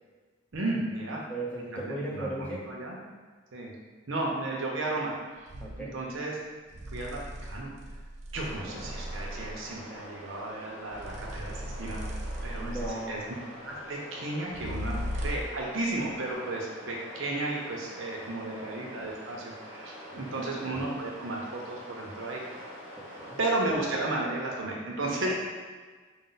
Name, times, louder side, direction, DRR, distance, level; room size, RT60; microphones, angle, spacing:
voice 1, 0.5-1.2 1.7-3.0 3.5-3.7 4.1-5.1 5.8-6.4 6.9-7.7 8.3-12.8 13.1-13.2 13.6-22.4 23.4-25.3, right 2 dB, 70° right, -2 dB, 0.8 m, -33 dB
voice 2, 1.3-2.7 5.6-5.9 8.4-8.9 12.6-13.2 18.3-18.7 20.1-20.5 22.9-23.4 25.2-25.3, right 1 dB, 5° left, -5 dB, 0.7 m, -38 dB
sound 1, 5.5-5.8 6.7-9.7 10.9-13.2 14.5-15.6, equal, 35° right, 0.4 m, -37 dB
sound 2, 8.4-23.6, equal, 10° right, 1.3 m, -45 dB
5.0 x 2.1 x 3.9 m, 1.4 s
head